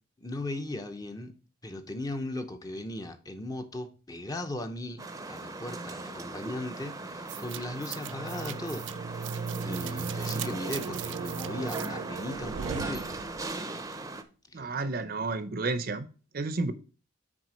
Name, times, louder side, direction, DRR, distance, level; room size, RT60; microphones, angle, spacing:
voice 1, 0.2-1.4 1.6-8.9 9.6-13.1 14.5-14.7, left 1 dB, 20° left, 0.7 m, -37 dB
sound 1, 5.0-14.2, right 2 dB, 20° right, 0.7 m, -39 dB
sound 2, 7.3-13.6, right 6 dB, 70° right, 0.3 m, -37 dB
voice 2, 14.5-16.1 16.3-16.7, right 3 dB, 50° right, 0.7 m, -31 dB
6.1 x 4.8 x 6.2 m
head